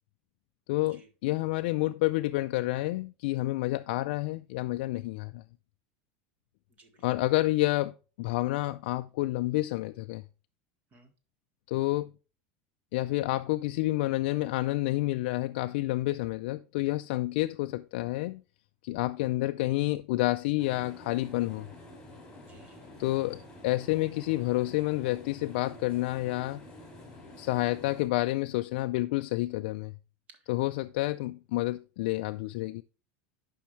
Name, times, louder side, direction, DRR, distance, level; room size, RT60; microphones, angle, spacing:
voice 1, 0.7-5.4 7.0-10.2 11.7-12.1 12.9-18.4 18.8-21.7 23.0-26.6 27.4-29.9 30.5-32.8, left 18 dB, 70° left, 0.3 m, -29 dB
sound 1, 20.6-28.1, left 1 dB, 10° left, 3.3 m, -49 dB
voice 2, 22.3-22.9 30.3-30.4, right 2 dB, 25° right, 1.5 m, -57 dB
10.5 x 5.4 x 3.1 m
supercardioid pair, 170°, 6 cm